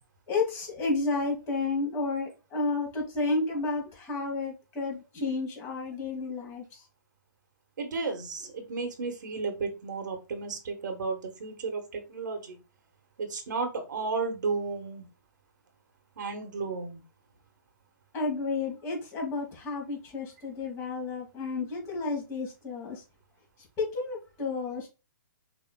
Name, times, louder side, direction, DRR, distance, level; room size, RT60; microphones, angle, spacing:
voice 1, 0.3-6.8 18.1-23.0 23.8-24.9, left 3 dB, 25° left, 1.9 m, -31 dB
voice 2, 7.8-12.6 13.2-15.1 16.2-17.0, right 4 dB, 70° right, 1.3 m, -33 dB
6.1 x 3.0 x 2.3 m
hypercardioid pair, 135°, 10 cm